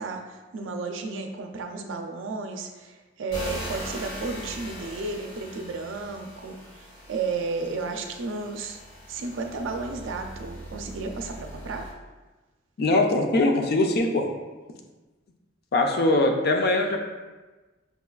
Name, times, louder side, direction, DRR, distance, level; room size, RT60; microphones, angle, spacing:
voice 1, 0.0-8.8 9.1-11.9, right 3 dB, 75° right, 4 dB, 0.4 m, -33 dB
sound 1, 3.3-11.9, equal, 70° left, 1.2 m, -40 dB
voice 2, 12.8-14.3 15.7-17.0, left 2 dB, 55° left, 3 dB, 0.4 m, -22 dB
5.3 x 2.2 x 2.3 m, 1.2 s
head